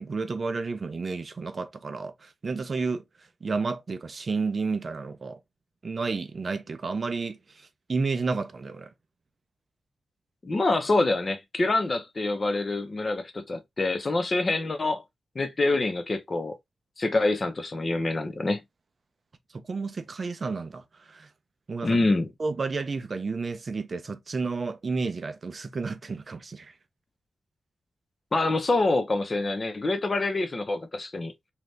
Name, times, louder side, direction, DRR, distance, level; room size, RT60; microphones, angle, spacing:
voice 1, 0.0-3.0 3.4-5.4 5.8-8.9 19.5-21.3 21.7-22.0 22.4-26.7, right 4 dB, 45° right, 0.5 m, -31 dB
voice 2, 10.4-15.0 15.3-16.6 17.0-18.6 21.8-22.3 28.3-31.3, left 2 dB, 35° left, 0.7 m, -26 dB
2.7 x 2.4 x 3.2 m
wide cardioid pair, 100°, 0 cm